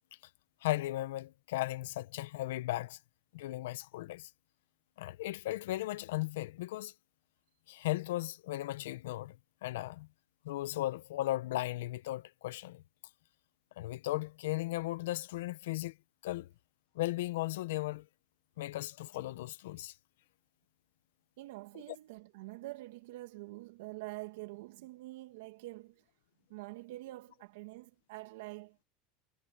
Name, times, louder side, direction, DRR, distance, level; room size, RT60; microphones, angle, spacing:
voice 1, 0.6-3.0 3.3-4.3 5.0-6.9 7.7-9.4 9.6-10.1 10.4-12.8 13.8-16.0 16.2-16.5 16.9-18.0 18.6-19.9, left 16 dB, 85° left, 1.0 m, -36 dB
voice 2, 21.4-26.0 26.5-28.8, right 19 dB, 80° right, 2.2 m, -46 dB
supercardioid pair, 110°, 0 cm